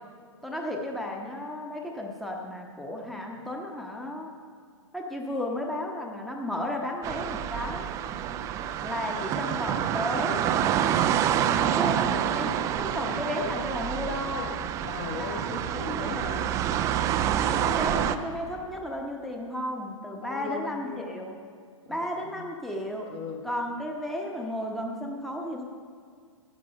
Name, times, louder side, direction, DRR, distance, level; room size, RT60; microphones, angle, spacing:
voice 1, 0.4-4.3 4.9-7.9 8.8-10.4 11.8-14.5 15.1-15.7 17.4-21.4 21.9-23.1 23.4-25.6, left 1 dB, ahead, 0 dB, 1.0 m, -33 dB
sound 1, 7.0-18.2, right 10 dB, 20° right, 0.4 m, -27 dB
voice 2, 14.8-16.5 20.2-21.1 21.8-22.5 23.1-23.4, left 5 dB, 30° left, 4 dB, 1.1 m, -38 dB
11.5 x 9.5 x 5.4 m, 2.1 s
figure-of-eight pair, 110°, 17 cm